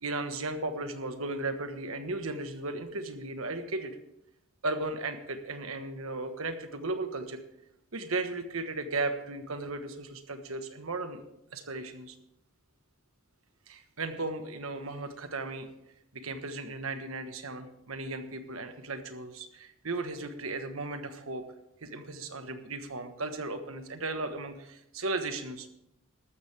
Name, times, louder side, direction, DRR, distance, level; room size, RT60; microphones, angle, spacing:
voice 1, 0.0-4.0 4.6-7.4 7.9-11.2 11.5-12.1 13.7-15.7 16.1-21.5 21.8-25.7, right 2 dB, 85° right, 8 dB, 1.4 m, -36 dB
14.0 x 12.5 x 3.4 m, 0.83 s
head